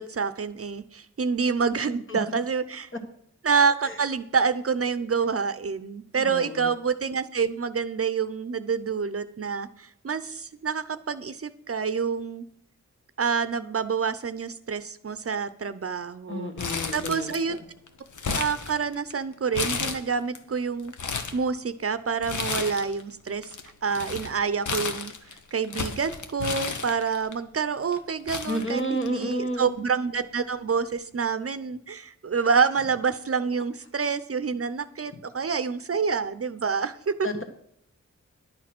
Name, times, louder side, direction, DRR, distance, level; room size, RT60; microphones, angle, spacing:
voice 1, 0.0-2.9 3.4-12.4 13.2-16.5 16.9-17.6 18.4-20.9 21.3-23.5 23.8-25.1 25.5-37.3, right 5 dB, 50° right, 13 dB, 0.7 m, -27 dB
voice 2, 6.2-6.7 16.3-17.3 28.5-29.7 37.2-37.4, equal, 45° left, 5 dB, 1.7 m, -31 dB
Crumpling crinkling, 16.6-17.6 17.9-19.1 19.5-20.4 20.8-21.4 22.2-23.0 23.3-27.3 27.9-28.0 28.3-29.3 29.6-29.7 30.7-30.9, left 5 dB, 90° left, 1.1 m, -32 dB
11.0 x 8.6 x 6.0 m, 0.69 s
wide cardioid pair, 80°, 29 cm